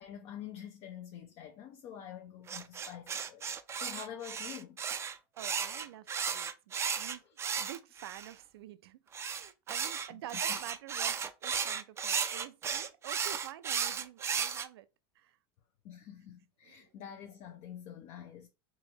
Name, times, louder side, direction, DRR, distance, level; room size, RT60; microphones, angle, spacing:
voice 1, 0.0-3.4 3.7-4.8 10.1-10.2 10.5-10.6 15.8-18.5, left 9 dB, 50° left, 0.6 m, -47 dB
sound 1, 2.5-8.3 9.1-14.7, right 7 dB, 20° right, 0.4 m, -35 dB
voice 2, 5.4-7.2 7.6-14.9 15.2-15.4 16.6-16.9, right 13 dB, 90° right, 0.4 m, -48 dB
3.9 x 2.9 x 2.7 m
supercardioid pair, 120°, 13 cm